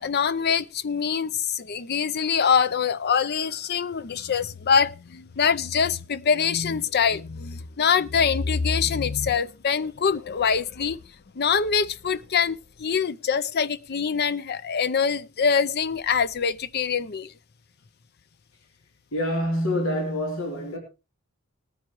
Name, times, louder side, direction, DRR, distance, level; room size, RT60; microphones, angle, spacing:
voice 1, 0.0-11.0 11.4-17.3, left 6 dB, 50° left, 0.6 m, -24 dB
voice 2, 19.1-20.8, left 1 dB, 85° left, 3.1 m, -26 dB
19.0 x 9.3 x 3.0 m
head